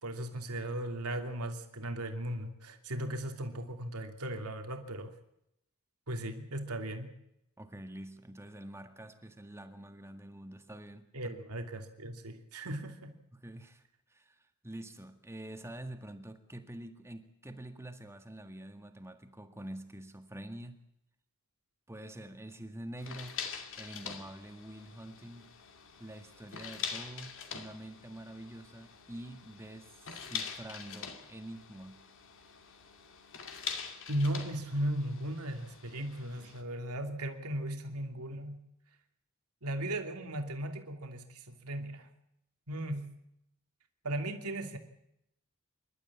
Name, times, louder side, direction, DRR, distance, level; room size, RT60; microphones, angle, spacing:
voice 1, 0.0-5.1 6.1-7.1 11.1-13.1 34.1-38.6 39.6-42.1 42.7-43.1 44.0-44.8, right 1 dB, 80° right, 5 dB, 2.9 m, -37 dB
voice 2, 7.6-11.3 13.3-20.8 21.9-23.4 23.8-25.5 26.0-32.0, right 1 dB, 10° right, 7 dB, 1.8 m, -46 dB
sound 1, 23.0-36.6, left 6 dB, 60° left, 2.6 m, -44 dB
28.0 x 12.5 x 8.6 m, 0.80 s
head